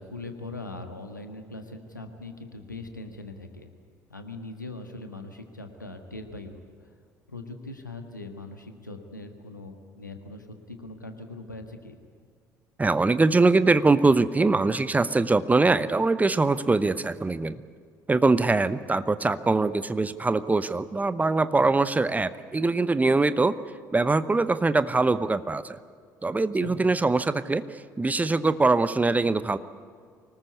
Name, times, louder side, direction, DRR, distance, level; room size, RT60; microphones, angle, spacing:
voice 1, 0.0-3.7 4.1-6.9 7.3-12.0 26.5-26.7, left 2 dB, 85° left, 6 dB, 1.6 m, -41 dB
voice 2, 12.8-17.6 18.1-23.5 23.9-25.8 26.2-29.6, right 3 dB, 15° right, 14 dB, 0.8 m, -23 dB
24.5 x 19.5 x 8.2 m, 2.1 s
figure-of-eight pair, 55°, 10 cm